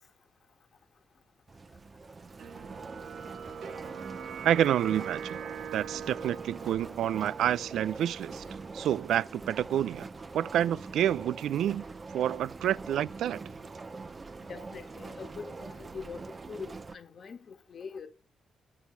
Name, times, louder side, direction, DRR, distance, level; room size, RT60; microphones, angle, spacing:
sound 1, 1.5-17.0, right 3 dB, 25° right, 0.7 m, -44 dB
sound 2, 2.4-9.3, right 7 dB, 65° right, 1.0 m, -43 dB
voice 1, 4.4-5.4 5.7-8.4 8.7-10.1 10.3-13.4, right 11 dB, 85° right, 0.4 m, -28 dB
voice 2, 14.5-16.2 16.5-18.1, left 5 dB, 45° left, 1.4 m, -43 dB
9.7 x 6.3 x 5.6 m
cardioid pair, 140°, 0 cm